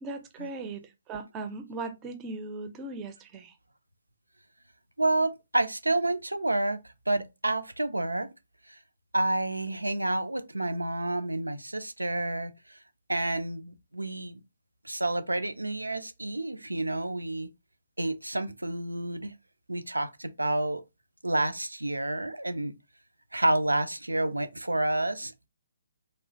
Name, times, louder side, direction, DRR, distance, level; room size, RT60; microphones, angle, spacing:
voice 1, 0.0-3.5, right 3 dB, 20° right, 0.5 m, -38 dB
voice 2, 5.0-8.3 8.7-8.8 9.1-12.8 13.1-14.4 14.8-17.5 18.0-19.3 19.7-20.8 21.2-22.7 23.3-25.5, right 2 dB, 85° right, 0.4 m, -29 dB
3.1 x 2.4 x 2.6 m
figure-of-eight pair, 135°, 0 cm